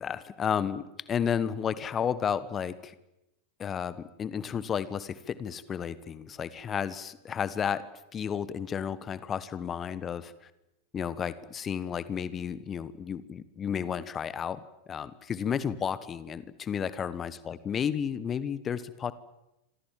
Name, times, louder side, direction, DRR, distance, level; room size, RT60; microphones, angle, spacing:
voice 1, 0.0-2.9 3.6-7.9 8.1-10.5 10.9-14.6 14.9-19.1, left 8 dB, 25° left, 16 dB, 1.5 m, -32 dB
27.0 x 25.5 x 7.6 m, 0.93 s
figure-of-eight pair, 90°, 0 cm